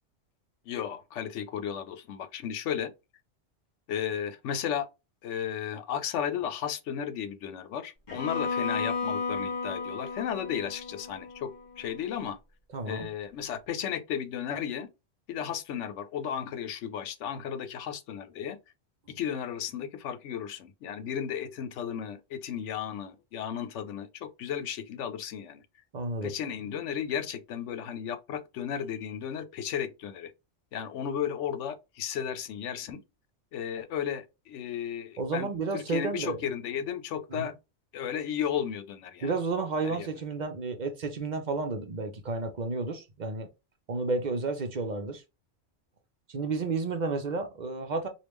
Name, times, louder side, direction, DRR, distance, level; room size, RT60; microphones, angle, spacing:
voice 1, 0.7-2.9 3.9-4.9 5.2-11.5 11.8-12.4 12.9-14.9 15.3-18.6 19.1-25.6 26.2-30.3 30.7-33.0 33.5-37.5 37.9-39.3 39.8-40.1, left 8 dB, 75° left, 0.9 m, -34 dB
Bowed string instrument, 8.1-12.1, left 4 dB, 40° left, 1.4 m, -34 dB
voice 2, 12.7-13.1 25.9-26.3 35.2-36.4 37.3-37.5 39.2-43.5 43.9-45.2 46.3-48.1, right 3 dB, 45° right, 0.7 m, -31 dB
3.5 x 2.4 x 3.0 m
omnidirectional pair, 1.2 m